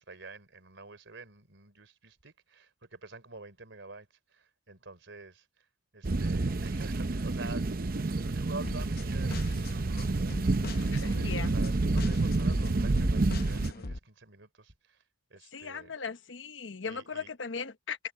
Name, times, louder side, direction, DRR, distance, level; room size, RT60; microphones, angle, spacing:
voice 1, 0.0-5.7 5.9-7.7 8.1-10.7 10.9-15.0 15.3-15.9 16.8-17.3, right 3 dB, 75° right, 3.4 m, -48 dB
sound 1, 6.0-13.7, right 2 dB, 50° right, 0.7 m, -29 dB
sound 2, 8.6-14.0, left 2 dB, 50° left, 0.8 m, -41 dB
voice 2, 10.9-11.5 15.5-18.0, left 5 dB, 75° left, 1.0 m, -38 dB
head